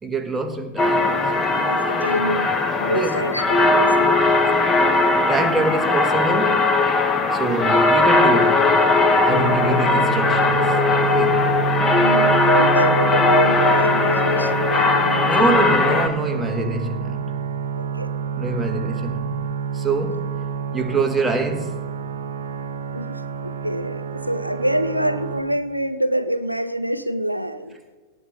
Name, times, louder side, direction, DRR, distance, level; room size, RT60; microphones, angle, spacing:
voice 1, 0.0-1.9 2.9-3.2 5.3-6.7 7.3-8.7 9.0-10.7 11.0-11.4 15.2-17.3 18.3-19.4 19.7-20.3 20.7-21.8, right 3 dB, 10° right, 1.2 m, -25 dB
sound 1, 0.8-16.1, left 3 dB, 20° left, 1.2 m, -18 dB
voice 2, 1.5-4.3 11.9-15.5 17.8-18.1 22.9-27.8, equal, 90° right, 0.5 m, -26 dB
sound 2, 9.3-25.4, right 7 dB, 60° right, 1.0 m, -28 dB
17.5 x 6.2 x 5.3 m
figure-of-eight pair, 90°, 0 cm